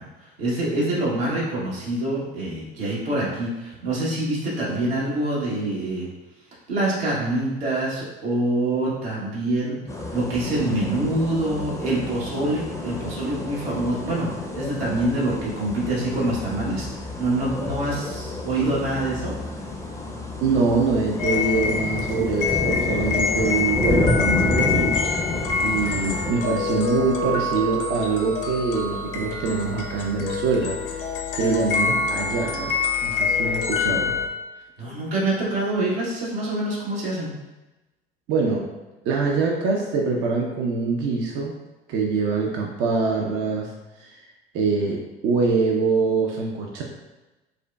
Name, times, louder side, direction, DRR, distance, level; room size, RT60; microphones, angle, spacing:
voice 1, 0.0-6.1 6.7-9.8 10.1-14.3 14.5-19.3 31.4-31.5 34.8-37.3, right 1 dB, 75° right, -6 dB, 1.1 m, -25 dB
sound 1, 9.9-26.3, left 2 dB, 10° left, 0.6 m, -30 dB
voice 2, 20.4-25.0 25.6-34.2 38.3-38.7 39.0-41.6 41.9-43.7 44.0-44.2 44.5-46.8, right 4 dB, 40° right, 0 dB, 0.5 m, -24 dB
sound 2, 21.2-34.3, left 5 dB, 65° left, 0.5 m, -26 dB
4.9 x 2.1 x 2.2 m, 1.1 s
figure-of-eight pair, 60°, 30 cm